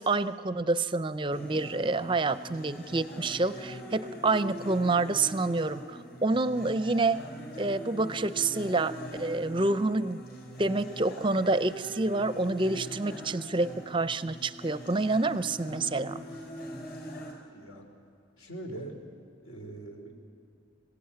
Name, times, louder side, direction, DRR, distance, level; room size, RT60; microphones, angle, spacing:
voice 1, 0.0-7.2 7.6-10.2 10.6-16.2, right 3 dB, 25° right, 14 dB, 0.5 m, -28 dB
sound 1, 1.3-17.3, equal, 45° left, 4.5 m, -42 dB
voice 2, 17.5-17.8 18.4-18.9 19.4-20.1, right 2 dB, 80° left, 3 dB, 3.6 m, -41 dB
26.5 x 16.5 x 8.8 m, 2.5 s
head